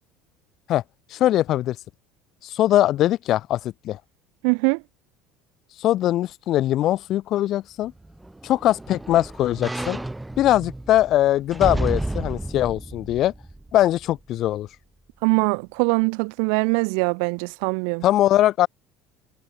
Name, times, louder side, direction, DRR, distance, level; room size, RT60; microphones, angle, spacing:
voice 1, 1.1-1.8 2.4-4.0 5.8-7.9 8.4-10.0 10.4-13.3 13.7-14.7 18.0-18.7, left 13 dB, 50° left, 2.4 m, -21 dB
voice 2, 4.4-4.8 15.2-18.0, right 40 dB or more, 80° right, 0.7 m, -22 dB
sound 1, 7.9-14.2 14.7-14.8, right 1 dB, 5° right, 1.6 m, -32 dB
supercardioid pair, 115°, 0 cm